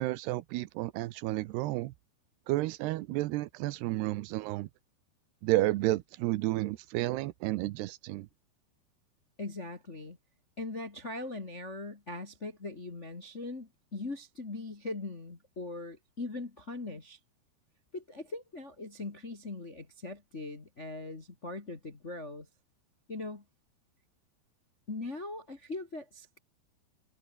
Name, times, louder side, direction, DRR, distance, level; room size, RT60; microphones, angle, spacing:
voice 1, 0.0-1.9 2.5-4.7 5.4-8.3, right 18 dB, 80° right, 2.7 m, -31 dB
voice 2, 9.4-10.2 10.6-17.2 17.9-22.5 23.1-23.4 24.9-26.4, left 2 dB, 35° left, 1.2 m, -40 dB
omnidirectional pair, 4.9 m